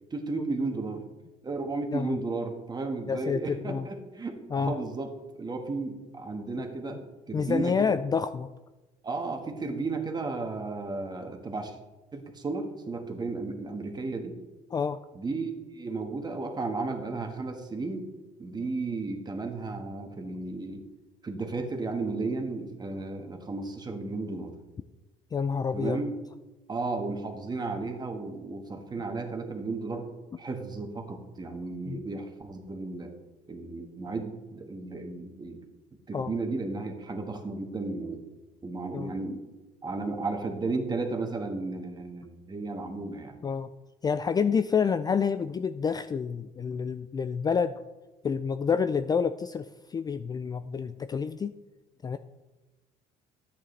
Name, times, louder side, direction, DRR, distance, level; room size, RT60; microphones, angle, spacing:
voice 1, 0.1-1.0 1.4-5.1 5.4-8.0 9.0-11.8 12.1-14.4 15.1-18.1 18.4-20.8 21.2-24.5 25.7-26.1 26.7-30.1 30.4-33.1 33.5-35.6 36.1-38.2 38.6-39.4 39.8-43.4, right 3 dB, 25° right, 5 dB, 1.5 m, -34 dB
voice 2, 3.1-3.9 4.5-4.7 7.3-8.5 14.7-15.0 25.3-26.0 31.9-32.0 36.1-36.3 38.9-39.1 43.4-43.7 44.0-47.7 48.2-51.5 52.0-52.2, left 6 dB, 25° left, 11 dB, 0.3 m, -28 dB
10.5 x 8.6 x 3.3 m, 1.1 s
supercardioid pair, 90°, 16 cm